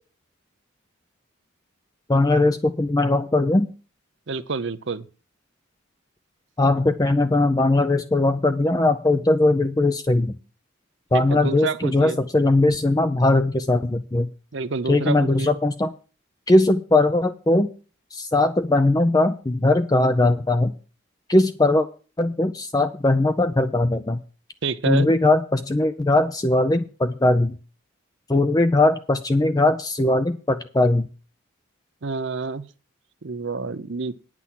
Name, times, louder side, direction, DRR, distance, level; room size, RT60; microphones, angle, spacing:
voice 1, 2.1-3.7 6.6-10.4 11.1-14.3 14.9-15.9 16.5-17.7 18.1-20.7 21.3-21.9 22.2-24.2 24.9-27.6 28.3-31.1, left 2 dB, 15° left, 0.4 m, -20 dB
voice 2, 4.3-5.0 11.1-12.2 14.5-15.5 24.6-25.1 32.0-32.6 33.2-34.1, right 4 dB, 55° right, 0.6 m, -28 dB
9.7 x 6.1 x 7.4 m
head